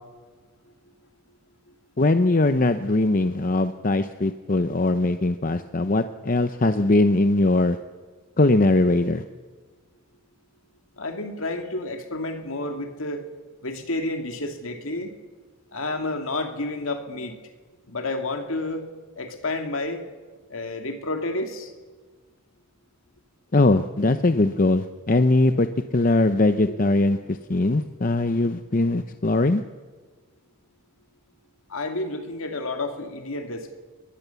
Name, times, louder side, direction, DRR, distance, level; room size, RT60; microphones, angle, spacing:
voice 1, 2.0-7.8 8.4-9.2 23.5-25.7 25.9-29.6, left 2 dB, 35° left, 10 dB, 0.7 m, -21 dB
voice 2, 11.0-13.2 13.6-15.1 15.7-17.4 17.9-18.9 19.2-20.0 20.5-21.7 31.7-33.8, left 2 dB, 65° left, 6 dB, 2.3 m, -30 dB
21.5 x 20.5 x 7.0 m, 1.4 s
head